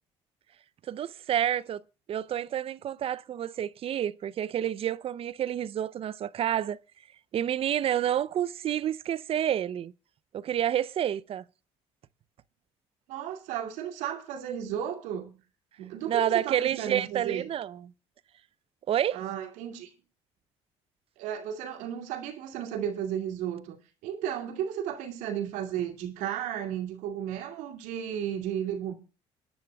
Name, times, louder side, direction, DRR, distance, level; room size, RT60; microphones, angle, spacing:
voice 1, 0.9-1.8 2.1-6.8 7.3-9.9 10.3-11.4 16.1-17.9 18.9-19.2, right 10 dB, 50° right, 0.6 m, -29 dB
voice 2, 13.1-15.4 15.8-17.5 19.1-19.9 21.2-23.8 24.0-28.9, right 9 dB, 80° right, 2.6 m, -34 dB
27.5 x 10.5 x 2.3 m
supercardioid pair, 85°, 13 cm